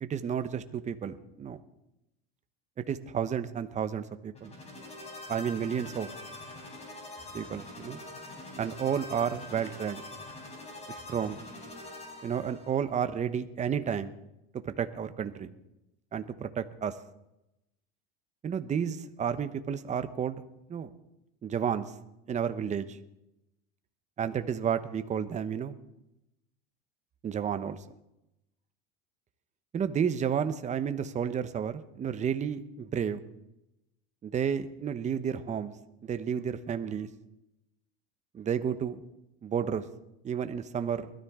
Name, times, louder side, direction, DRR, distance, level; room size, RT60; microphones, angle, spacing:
voice 1, 0.0-1.6 2.9-4.5 5.3-6.1 7.3-8.0 8.6-10.0 10.9-11.4 12.2-14.1 14.6-15.5 16.1-16.9 18.4-20.4 20.7-20.9 21.4-21.9 22.3-23.0 24.2-25.7 27.2-27.8 29.7-33.2 34.2-35.7 36.0-37.1 38.3-39.0 39.4-39.9 40.2-41.1, right 8 dB, 25° right, 10 dB, 0.9 m, -31 dB
sound 1, 4.3-12.8, left 2 dB, 20° left, 4.0 m, -44 dB
21.0 x 13.0 x 3.7 m, 0.90 s
supercardioid pair, 130°, 31 cm